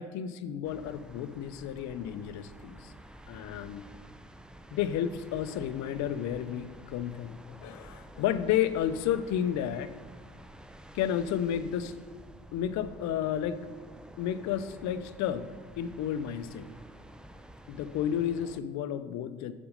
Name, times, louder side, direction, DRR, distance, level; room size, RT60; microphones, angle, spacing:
voice 1, 0.0-2.9 3.3-3.8 4.7-9.9 10.9-11.9 12.5-13.6 14.2-15.5 15.8-16.7 17.7-19.5, left 10 dB, 55° left, 13 dB, 0.6 m, -32 dB
sound 1, 0.6-18.6, right 1 dB, 5° right, 0.3 m, -50 dB
6.8 x 5.2 x 5.1 m, 1.5 s
hypercardioid pair, 60°, 34 cm